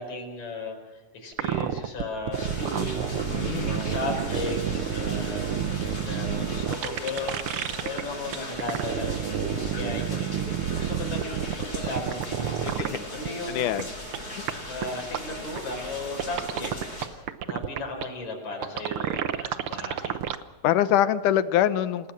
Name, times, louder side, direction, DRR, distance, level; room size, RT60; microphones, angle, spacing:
voice 1, 0.0-7.4 7.8-9.3 9.7-13.8 14.6-16.7 17.5-20.2, left 2 dB, 60° left, 2 dB, 6.3 m, -36 dB
sound 1, 1.3-8.0 8.3-13.0 13.2-13.3 13.8-13.9 14.1-14.2 14.5-14.6 14.8-14.9 15.1-15.2 15.6-15.7 16.2-18.0 18.6-20.4, right 9 dB, 75° right, 1.2 m, -29 dB
sound 2, 2.3-17.1, left 1 dB, 20° left, 7.8 m, -38 dB
voice 2, 3.3-3.8 12.6-13.0 13.5-13.9 20.6-22.1, left 11 dB, 75° left, 13 dB, 2.4 m, -24 dB
28.0 x 18.0 x 7.5 m, 1.1 s
omnidirectional pair, 3.7 m